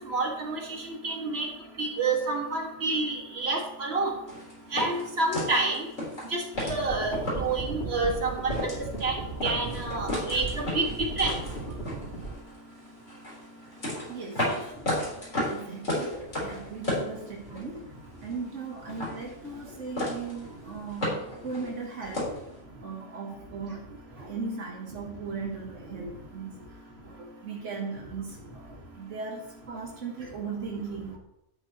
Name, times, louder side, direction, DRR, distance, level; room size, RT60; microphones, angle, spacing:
voice 1, 0.1-1.5 1.8-4.1 4.7-5.9 6.2-9.2 9.4-10.9 11.2-11.4, right 3 dB, 60° right, 0 dB, 2.4 m, -29 dB
sound 1, 4.3-7.6 8.1-8.2 8.4-9.1 9.4-12.6 13.1-17.8 18.0-18.6 18.9-19.7 20.0-20.4 20.7-22.4, left 1 dB, 80° left, 4.8 m, -33 dB
sound 2, 6.5-12.3, right 2 dB, 55° left, 3.6 m, -36 dB
voice 2, 14.1-14.7 15.3-17.9 18.2-22.3 22.8-31.2, right 4 dB, 80° right, 0 dB, 1.7 m, -38 dB
12.5 x 10.5 x 3.1 m, 0.85 s
omnidirectional pair, 1.2 m